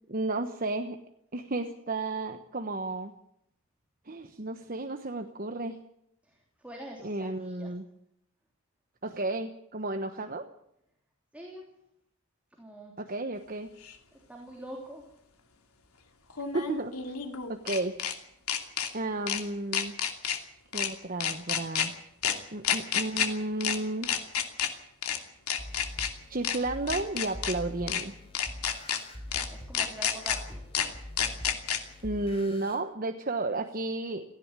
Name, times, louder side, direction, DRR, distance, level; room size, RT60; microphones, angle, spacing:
voice 1, 0.1-1.0 1.3-3.1 4.1-5.8 7.0-7.8 9.0-10.5 13.0-13.7 16.5-17.1 17.5-17.9 18.9-19.9 20.7-21.9 22.5-24.1 26.3-28.1 32.0-34.2, right 2 dB, 40° right, 7 dB, 1.1 m, -32 dB
voice 2, 6.2-7.7 11.3-11.7 12.6-12.9 14.3-15.0 29.5-30.7, equal, 5° right, 0 dB, 3.1 m, -45 dB
sound 1, 13.8-13.9 16.3-18.1 18.5-18.9 19.3-19.4 19.7-20.4 20.7-20.9 21.2-21.9 22.2-22.3 22.6-23.3 23.6-23.8 24.0-24.7 25.0-25.2 25.5-26.1 26.4-26.6 26.9-27.5 27.9-28.0 28.3-29.0 29.3-29.4 29.7-30.4 30.7-30.9 31.2-31.8, left 8 dB, 80° left, 2.7 m, -29 dB
sound 2, 25.6-32.8, left 1 dB, 25° left, 4.5 m, -44 dB
17.5 x 15.5 x 9.7 m, 0.77 s
head